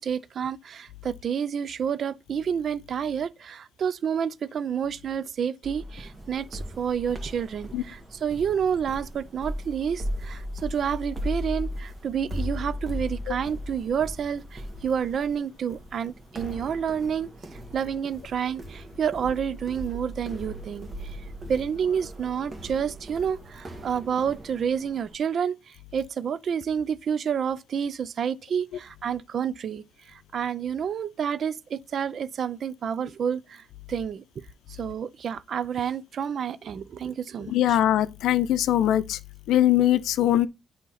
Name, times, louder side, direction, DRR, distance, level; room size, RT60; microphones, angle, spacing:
voice 1, 0.0-17.3 17.7-20.9 21.5-25.5 25.9-29.8 30.3-33.6 33.9-34.2 34.8-37.8, right 7 dB, 55° right, 0.4 m, -29 dB
sound 1, 5.6-25.2, equal, 30° right, 1.4 m, -37 dB
voice 2, 37.5-39.2 39.5-40.5, left 12 dB, 80° left, 0.5 m, -21 dB
8.2 x 2.9 x 5.6 m
cardioid pair, 90°, 0 cm